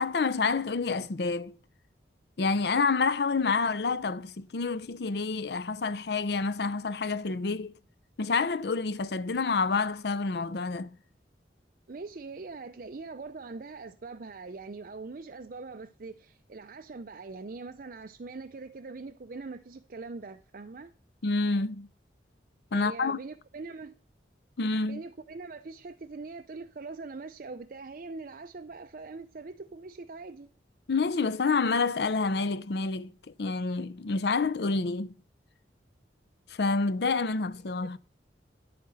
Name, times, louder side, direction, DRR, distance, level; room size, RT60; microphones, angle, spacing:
voice 1, 0.0-1.5 2.4-7.7 8.2-11.0 21.2-21.9 22.7-23.2 24.6-25.0 30.9-33.1 33.4-35.1 36.5-38.0, left 4 dB, 60° left, 0.6 m, -28 dB
voice 2, 11.9-20.9 22.7-24.0 24.9-30.5 37.8-38.0, right 3 dB, 50° right, 0.5 m, -42 dB
10.5 x 8.6 x 4.1 m
head